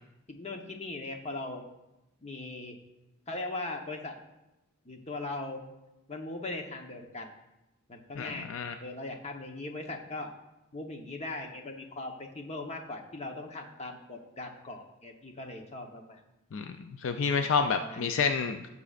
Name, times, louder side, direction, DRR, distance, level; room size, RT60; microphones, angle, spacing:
voice 1, 0.3-1.6 2.2-2.8 3.3-4.1 4.8-5.6 6.1-7.3 7.9-8.5 8.8-10.3 10.7-16.2 17.2-18.1, left 2 dB, 30° left, 3 dB, 1.0 m, -39 dB
voice 2, 8.2-8.7 16.5-18.7, left 5 dB, 65° left, 7 dB, 0.4 m, -29 dB
16.5 x 6.8 x 2.5 m, 0.95 s
head